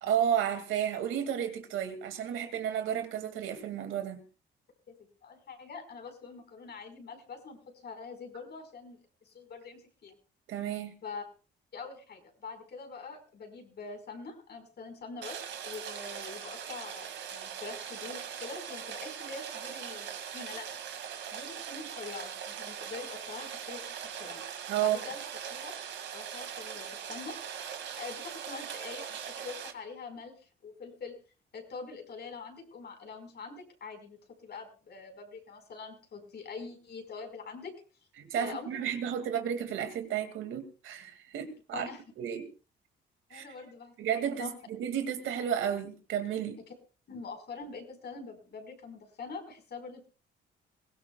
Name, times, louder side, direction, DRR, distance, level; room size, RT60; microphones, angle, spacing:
voice 1, 0.0-4.2 10.5-11.0 24.7-25.0 38.2-41.9 42.2-42.5 43.3-43.4 44.0-46.6, right 9 dB, 85° right, 7 dB, 2.4 m, -32 dB
voice 2, 5.2-10.1 11.0-11.2 11.7-15.4 15.6-21.0 21.3-23.8 24.1-24.4 24.8-25.2 25.5-25.7 26.1-27.6 27.9-31.1 31.5-37.7 38.3-38.9 41.7-42.0 43.3-44.6 47.1-50.1, left 4 dB, 55° left, 4 dB, 4.9 m, -44 dB
Rain, 15.2-29.7, right 8 dB, 70° right, 2.3 m, -41 dB
22.5 x 17.0 x 2.4 m, 0.35 s
cardioid pair, 90°, 20 cm